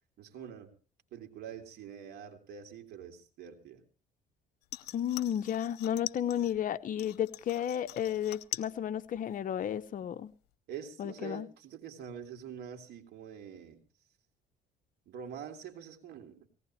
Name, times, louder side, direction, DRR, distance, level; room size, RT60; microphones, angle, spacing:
voice 1, 0.2-0.7 1.1-3.8 10.7-13.8 15.0-16.5, right 8 dB, 75° right, 3.2 m, -45 dB
sound 1, 4.6-6.6 7.0-8.8 9.1-9.6 10.0-10.1, left 16 dB, 85° left, 0.8 m, -43 dB
voice 2, 4.9-10.3 11.0-11.5, left 10 dB, 50° left, 0.8 m, -33 dB
19.0 x 18.0 x 3.2 m
cardioid pair, 110°, 17 cm